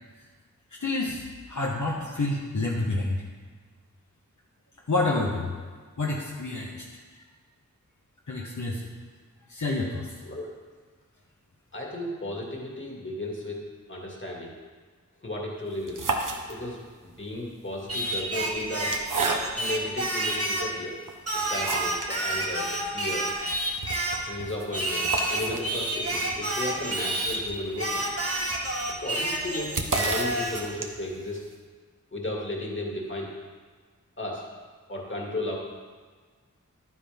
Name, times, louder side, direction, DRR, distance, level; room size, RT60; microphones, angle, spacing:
voice 1, 0.8-3.2 4.9-5.6 6.0-6.8 8.3-8.9 9.5-10.1, left 2 dB, 70° left, -3 dB, 1.2 m, -28 dB
voice 2, 11.7-13.6 13.9-14.6 15.2-16.1 16.5-18.9 19.6-21.0 21.3-23.3 24.3-28.1 29.0-31.4 32.1-33.3 34.2-34.4 34.9-35.6, left 1 dB, 40° left, -2 dB, 2.2 m, -34 dB
sound 1, 15.7-16.9 17.8-19.8 20.5-20.6 21.0-22.2 22.5-22.6 22.9-23.0 23.3-31.2, right 3 dB, 80° right, 0.9 m, -33 dB
Singing, 17.9-20.8 21.3-24.3 24.7-27.4 27.8-30.7, right 1 dB, 50° right, 1.5 m, -29 dB
11.0 x 9.7 x 3.6 m, 1.5 s
wide cardioid pair, 45°, 31 cm